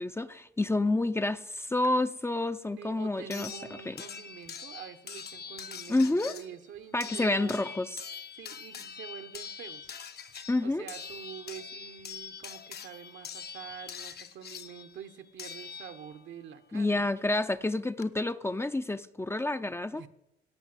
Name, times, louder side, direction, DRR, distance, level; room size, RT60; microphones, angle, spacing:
voice 1, 0.0-3.5 3.9-4.0 5.9-6.3 6.9-8.0 10.5-10.9 16.7-20.1, left 2 dB, 10° left, 11 dB, 0.5 m, -29 dB
sound 1, 1.8-1.9 3.3-16.3 17.6-17.7 18.0-18.1, left 7 dB, 55° left, 0.9 m, -44 dB
voice 2, 2.8-7.7 8.3-9.9 10.6-17.1 19.9-20.1, right 9 dB, 70° right, 9 dB, 1.1 m, -46 dB
17.5 x 5.8 x 8.0 m, 0.84 s
cardioid pair, 90°, 20 cm